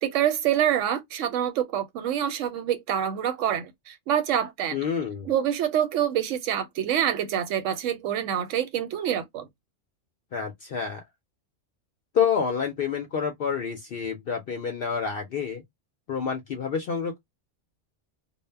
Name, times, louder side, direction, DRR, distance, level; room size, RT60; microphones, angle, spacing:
voice 1, 0.0-4.8 5.3-9.5, right 10 dB, 85° right, 0.9 m, -26 dB
voice 2, 4.7-5.3 10.3-11.0 12.1-15.6 16.1-17.2, left 6 dB, 60° left, 0.6 m, -28 dB
2.1 x 2.0 x 3.2 m
omnidirectional pair, 1.3 m